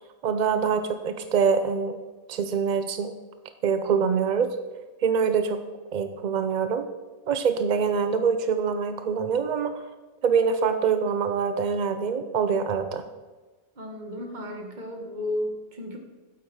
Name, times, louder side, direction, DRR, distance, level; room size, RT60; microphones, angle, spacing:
voice 1, 0.2-2.0 2.3-3.1 3.6-4.5 5.0-5.6 5.9-6.9 7.3-9.7 10.2-13.0, right 6 dB, 60° right, 9 dB, 0.4 m, -24 dB
voice 2, 13.8-16.0, left 1 dB, 35° right, 2 dB, 1.5 m, -33 dB
8.6 x 8.1 x 4.7 m, 1.2 s
omnidirectional pair, 1.5 m